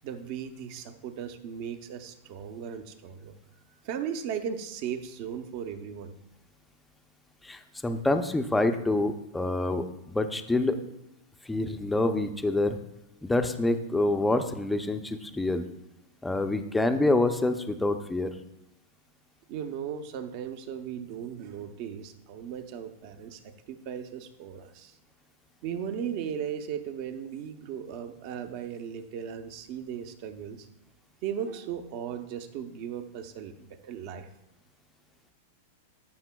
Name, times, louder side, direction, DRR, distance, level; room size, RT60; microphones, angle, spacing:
voice 1, 0.0-3.3 3.8-6.1 19.5-24.9 25.6-30.7 31.2-34.3, right 8 dB, 50° right, 8 dB, 0.7 m, -37 dB
voice 2, 7.4-10.8 11.4-12.8 13.2-15.6 16.2-18.3, left 2 dB, 5° left, 7 dB, 0.5 m, -27 dB
14.0 x 5.5 x 2.3 m, 0.92 s
supercardioid pair, 140°, 0 cm